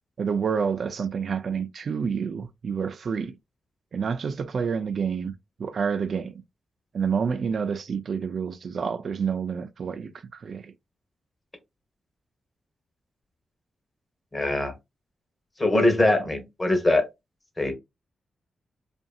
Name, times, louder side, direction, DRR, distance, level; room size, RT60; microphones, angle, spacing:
voice 1, 0.2-3.3 3.9-5.3 5.6-6.4 6.9-10.1 10.4-10.7, right 6 dB, 65° right, 0.3 m, -28 dB
voice 2, 14.3-14.7 15.6-17.0 17.6-17.7, left 2 dB, 25° left, 1.0 m, -22 dB
2.6 x 2.5 x 2.3 m
cardioid pair, 70°, 0 cm